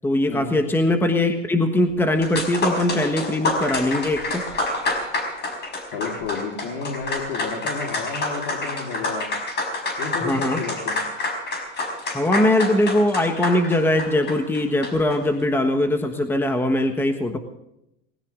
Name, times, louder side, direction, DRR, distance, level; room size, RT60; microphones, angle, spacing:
voice 1, 0.0-4.4 10.2-10.6 12.1-17.4, left 1 dB, 5° left, 6 dB, 1.4 m, -21 dB
sound 1, 1.9-2.0 2.2-15.2, left 2 dB, 25° left, 5.0 m, -28 dB
voice 2, 5.9-9.3 10.0-11.0, left 5 dB, 65° left, 1 dB, 4.4 m, -31 dB
19.5 x 17.0 x 3.8 m, 0.83 s
supercardioid pair, 145°, 38 cm